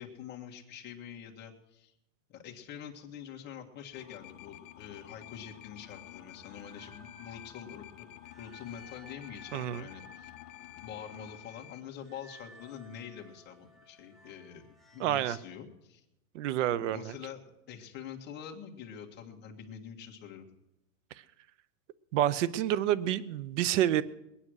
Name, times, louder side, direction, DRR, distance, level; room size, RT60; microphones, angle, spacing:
voice 1, 0.0-1.9 2.3-8.1 8.4-10.3 10.8-14.6 14.9-16.0 16.7-20.5, left 8 dB, 25° left, 1 dB, 1.7 m, -46 dB
sound 1, 3.9-11.8, left 14 dB, 55° left, 0.9 m, -50 dB
sound 2, 5.8-15.6, equal, ahead, 0.5 m, -58 dB
voice 2, 9.5-9.9 15.0-15.4 16.3-17.1 22.1-24.0, right 12 dB, 55° right, 19 dB, 0.7 m, -28 dB
21.0 x 9.9 x 6.4 m, 0.87 s
supercardioid pair, 165°, 43 cm